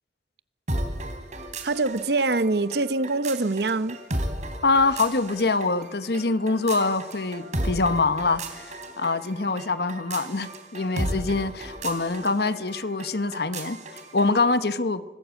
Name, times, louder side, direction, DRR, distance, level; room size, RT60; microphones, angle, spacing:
sound 1, 0.7-14.4, right 1 dB, 45° right, 3.4 m, -35 dB
voice 1, 1.6-4.0, right 3 dB, 65° right, 0.9 m, -24 dB
voice 2, 4.6-15.0, left 3 dB, 65° left, 1.1 m, -25 dB
25.0 x 19.5 x 8.3 m
head